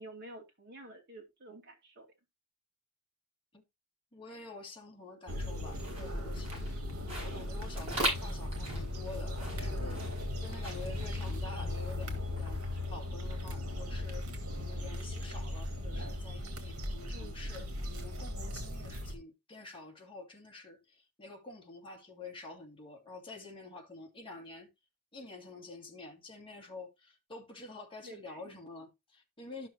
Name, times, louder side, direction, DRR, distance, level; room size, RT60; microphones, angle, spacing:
voice 1, 0.0-2.1 17.1-17.5 28.0-28.4, right 1 dB, 50° right, 2.5 m, -50 dB
voice 2, 4.1-6.7 7.2-24.7 25.1-29.7, left 3 dB, 25° left, 2.6 m, -48 dB
sound 1, 5.3-19.1, left 1 dB, 80° right, 2.2 m, -38 dB
sound 2, 5.5-12.8, right 1 dB, 30° right, 6.7 m, -41 dB
12.5 x 6.1 x 2.9 m
head